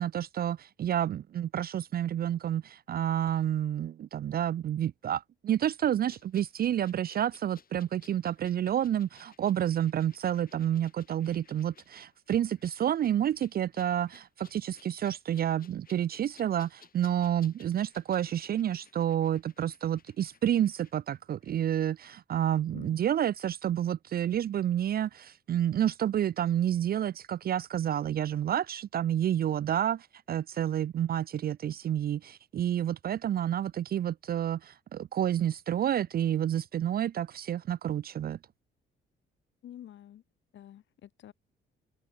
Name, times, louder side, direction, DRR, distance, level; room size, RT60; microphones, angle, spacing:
voice 1, 0.0-38.4, right 10 dB, 50° right, 0.5 m, -29 dB
sound 1, 6.1-21.6 21.8-22.0, left 7 dB, 45° left, 5.3 m, -60 dB
voice 2, 39.6-40.2 40.5-41.3, left 11 dB, 70° left, 3.9 m, -48 dB
cardioid pair, 90°, 20 cm